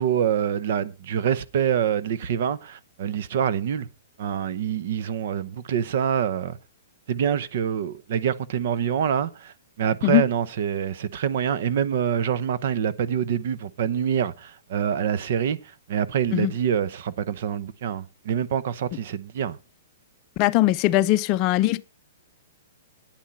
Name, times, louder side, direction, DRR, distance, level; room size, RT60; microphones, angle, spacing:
voice 1, 0.0-3.9 4.2-6.6 7.1-15.6 15.9-19.6, right 8 dB, 55° right, 0.8 m, -26 dB
voice 2, 20.4-21.8, left 16 dB, 30° left, 0.5 m, -20 dB
11.5 x 9.1 x 4.5 m
hypercardioid pair, 155°, 0 cm